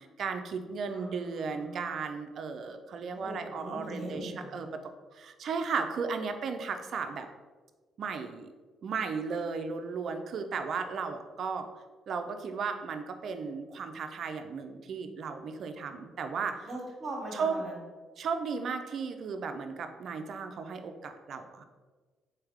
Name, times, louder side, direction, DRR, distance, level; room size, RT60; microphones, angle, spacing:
voice 1, 0.0-4.7 5.1-7.3 8.0-8.5 8.8-11.7 12.1-16.7 17.3-17.6 18.2-21.6, right 5 dB, 60° right, 7 dB, 0.4 m, -35 dB
voice 2, 0.9-1.9 3.2-4.6 16.6-17.8, right 1 dB, 45° right, -2 dB, 1.1 m, -41 dB
3.9 x 3.3 x 3.5 m, 1.4 s
cardioid pair, 90°, 0 cm